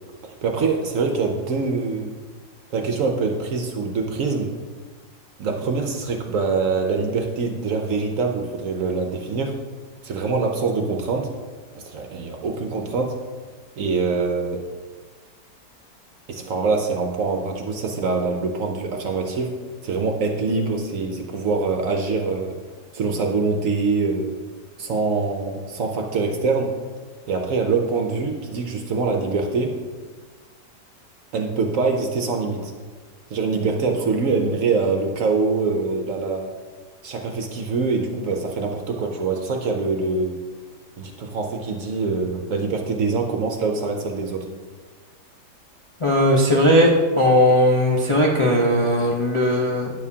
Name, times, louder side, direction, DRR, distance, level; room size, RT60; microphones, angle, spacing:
voice 1, 0.2-2.1 2.7-4.5 5.4-9.5 10.0-11.3 11.7-13.1 13.8-14.6 16.3-19.5 19.8-22.5 22.9-24.3 24.8-26.7 27.3-29.7 31.3-32.7 33.3-36.5 37.0-40.3 41.0-44.5, right 4 dB, 60° right, 3 dB, 0.9 m, -24 dB
voice 2, 46.0-46.9 47.2-49.9, equal, 30° left, -3 dB, 0.5 m, -18 dB
9.8 x 7.1 x 2.8 m, 1.4 s
omnidirectional pair, 1.8 m